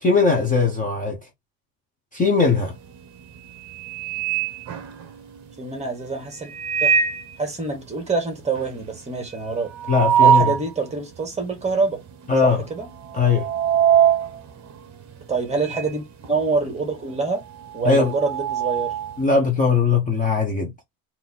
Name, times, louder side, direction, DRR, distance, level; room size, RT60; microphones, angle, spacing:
voice 1, 0.0-1.2 2.1-2.7 9.9-10.5 12.3-12.6 13.1-13.5 17.8-18.1 19.2-20.7, left 4 dB, 15° left, 0.9 m, -19 dB
sound 1, 2.6-3.0 3.4-5.4 6.4-7.3 7.7-7.8 8.1-8.2 8.5-10.7 11.2-11.3 12.1-12.4 12.7-16.0 16.2-19.2, right 9 dB, 35° right, 0.9 m, -22 dB
voice 2, 5.6-6.5 6.8-6.9 7.4-9.7 10.2-12.0 12.4-12.9 15.3-17.4 17.7-19.0, right 4 dB, 15° right, 1.4 m, -26 dB
3.8 x 2.8 x 4.0 m
cardioid pair, 145°, 50 cm